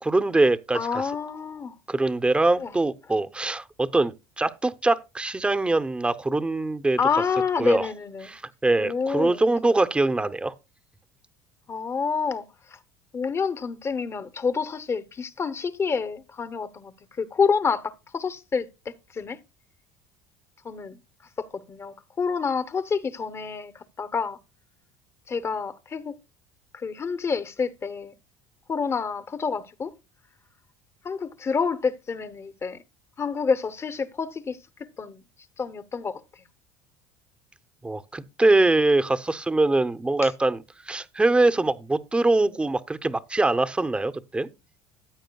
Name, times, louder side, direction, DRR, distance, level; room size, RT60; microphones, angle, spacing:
voice 1, 0.0-1.0 1.9-7.0 7.6-7.9 8.3-10.5 37.8-40.6 40.8-44.5, right 2 dB, 10° right, 0.7 m, -23 dB
voice 2, 0.7-1.7 2.6-2.8 7.0-8.3 8.8-9.4 11.7-12.8 13.1-18.7 19.1-19.4 20.6-21.0 21.4-24.4 25.3-26.1 26.7-28.1 28.7-29.9 31.0-32.8 33.2-35.2 35.6-36.2 40.2-40.3, left 5 dB, 30° left, 0.9 m, -28 dB
14.5 x 8.8 x 2.3 m
supercardioid pair, 105°, 9 cm